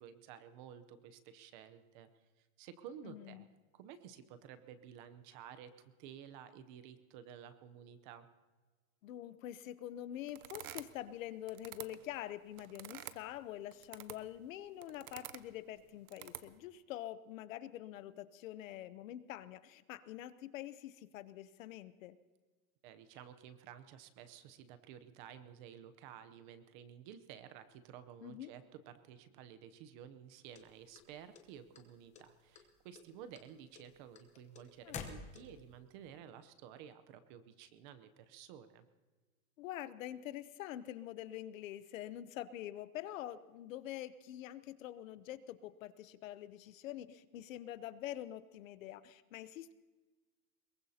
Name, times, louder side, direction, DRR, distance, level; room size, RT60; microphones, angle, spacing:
voice 1, 0.0-2.1 2.4-3.5 3.7-5.7 6.0-8.3 22.8-38.9, right 9 dB, 35° right, 11 dB, 0.8 m, -53 dB
voice 2, 3.0-3.5 9.0-22.2 28.2-28.5 34.8-35.3 39.6-49.7, left 12 dB, 65° left, 14 dB, 0.8 m, -46 dB
sound 1, 10.3-11.1 11.5-13.2 13.7-14.4 14.8-15.5 16.1-16.5, right 13 dB, 85° right, 1.0 m, -49 dB
sound 2, 30.5-31.8 32.1-32.7 32.9-35.8, left 5 dB, 15° left, 0.9 m, -48 dB
23.0 x 22.0 x 2.8 m, 1.3 s
supercardioid pair, 165°, 42 cm